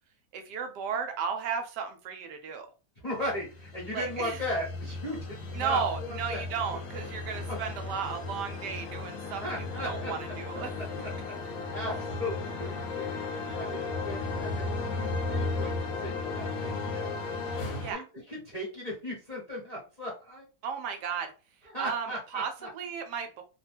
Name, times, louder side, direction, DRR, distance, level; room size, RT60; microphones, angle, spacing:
voice 1, 0.3-2.7 3.9-4.4 5.5-9.4 9.8-10.7 17.8-18.0 20.6-21.3 21.8-22.1 22.3-23.4, right 6 dB, 75° right, 6 dB, 1.1 m, -34 dB
voice 2, 3.0-6.4 7.5-7.6 9.2-10.1 11.0-11.1 11.4-17.1 17.6-20.5 21.6-22.7, left 1 dB, 30° left, -5 dB, 0.8 m, -37 dB
sound 1, 3.2-17.9, left 3 dB, 60° left, 1.0 m, -35 dB
2.9 x 2.1 x 3.3 m, 0.34 s
omnidirectional pair, 1.9 m